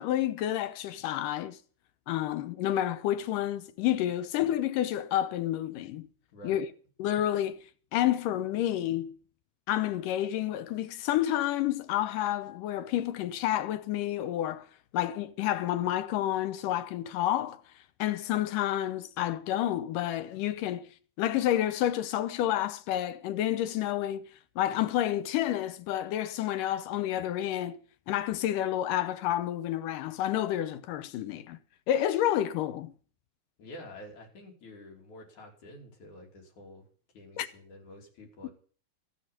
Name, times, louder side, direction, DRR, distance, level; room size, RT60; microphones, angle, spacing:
voice 1, 0.0-1.6 2.1-6.1 6.4-6.7 7.0-7.6 7.9-9.2 9.7-14.7 14.9-17.6 18.0-20.9 21.2-24.2 24.6-27.8 28.1-31.6 31.9-32.9 37.4-37.5, left 12 dB, 85° left, 2.5 m, -29 dB
voice 2, 6.3-6.6 33.6-36.9 37.1-38.5, left 1 dB, 65° left, 4.6 m, -48 dB
14.5 x 8.2 x 7.3 m
omnidirectional pair, 3.8 m